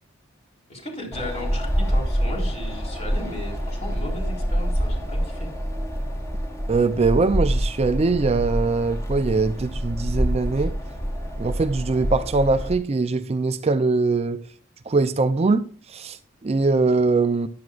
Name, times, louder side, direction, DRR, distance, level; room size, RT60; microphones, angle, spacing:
voice 1, 0.7-5.5 10.6-10.7, left 1 dB, 30° left, 3.8 m, -36 dB
Wind, 1.1-12.7, equal, 15° left, 2.5 m, -26 dB
voice 2, 6.7-10.7 11.4-14.4 14.9-17.5, right 3 dB, 30° right, 0.4 m, -22 dB
13.5 x 10.5 x 2.4 m
head